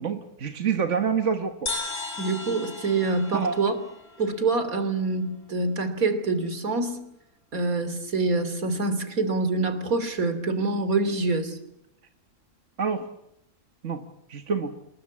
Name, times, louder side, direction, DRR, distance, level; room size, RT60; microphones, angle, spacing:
voice 1, 0.0-1.7 3.3-3.6 12.8-13.1 13.8-14.0 14.3-14.7, right 6 dB, 55° right, 7 dB, 1.7 m, -27 dB
sound 1, 1.7-5.2, left 3 dB, 80° left, 3.9 m, -36 dB
voice 2, 2.2-3.7 4.2-7.0 7.5-11.6, right 3 dB, 70° right, 11 dB, 3.4 m, -26 dB
26.5 x 21.0 x 8.4 m, 0.79 s
omnidirectional pair, 1.5 m